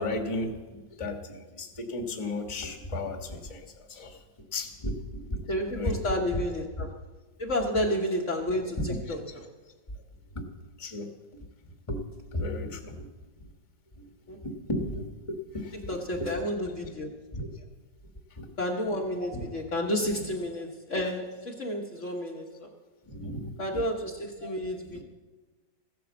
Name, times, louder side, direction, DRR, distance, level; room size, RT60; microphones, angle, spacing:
voice 1, 0.0-4.2 4.5-6.0 8.8-9.1 10.3-10.5 10.8-11.4 11.9-12.0 12.3-13.1 14.0-14.1 14.4-16.4 17.3-17.5 18.3-18.5 19.3-19.4 23.1-23.8 24.4-24.5 24.8-25.0, left 1 dB, 20° left, 3 dB, 1.5 m, -35 dB
voice 2, 5.5-7.0 7.4-9.2 14.3-14.4 15.9-17.1 18.6-22.7 23.6-25.0, left 1 dB, 45° left, 0 dB, 1.5 m, -31 dB
15.5 x 9.4 x 7.1 m, 1.2 s
omnidirectional pair, 1.9 m